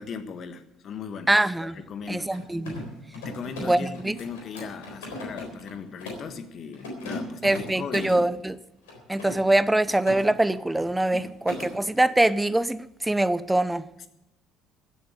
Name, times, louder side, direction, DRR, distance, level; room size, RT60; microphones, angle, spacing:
voice 1, 0.0-2.4 3.1-8.3 9.1-9.2 11.1-11.7 14.0-14.1, left 6 dB, 50° left, 1.4 m, -38 dB
voice 2, 1.3-1.8 2.1-2.8 3.6-4.2 7.4-8.6 9.1-13.8, right 1 dB, 10° right, 0.7 m, -23 dB
Mechanisms, 2.3-6.3 6.7-8.2 8.8-10.2 10.5-10.9 11.1-11.7, left 2 dB, 75° left, 3.8 m, -38 dB
15.5 x 7.9 x 7.7 m
figure-of-eight pair, 55°, 0 cm